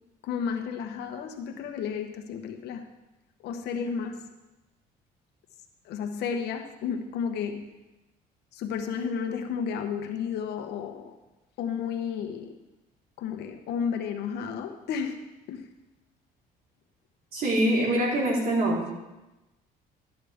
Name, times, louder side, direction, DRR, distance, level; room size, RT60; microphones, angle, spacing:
voice 1, 0.2-2.9 3.4-4.3 5.8-7.7 8.5-11.2 11.6-12.5 13.2-15.7, left 6 dB, 80° left, 6 dB, 1.1 m, -32 dB
voice 2, 17.3-19.0, right 1 dB, 60° right, -4 dB, 4.2 m, -24 dB
13.0 x 10.0 x 3.6 m, 1.0 s
cardioid pair, 110°, 17 cm